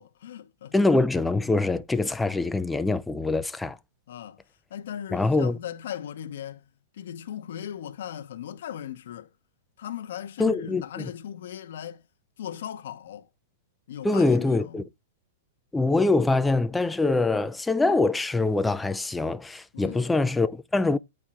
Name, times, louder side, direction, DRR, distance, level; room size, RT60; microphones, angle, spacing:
voice 1, 0.0-0.7 4.1-4.4 4.7-6.7 6.9-9.3 9.8-12.0 12.4-13.3 13.9-14.9 19.7-20.1, left 10 dB, 70° left, 0.9 m, -38 dB
voice 2, 0.7-3.8 5.1-5.6 10.4-10.8 14.0-14.8 15.7-21.0, left 3 dB, 5° left, 0.4 m, -24 dB
8.7 x 4.5 x 3.6 m
hypercardioid pair, 140°, 0 cm